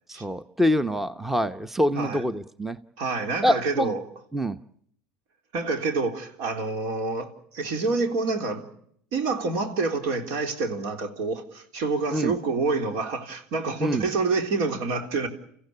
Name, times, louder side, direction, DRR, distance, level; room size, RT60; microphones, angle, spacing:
voice 1, 0.1-2.8 3.4-3.9 4.3-4.6 12.1-12.3 13.8-14.1, equal, 5° right, 0.9 m, -25 dB
voice 2, 3.0-4.0 5.5-8.6 9.1-15.3, right 3 dB, 70° right, 3.6 m, -27 dB
30.0 x 15.5 x 8.4 m
supercardioid pair, 100°, 5 cm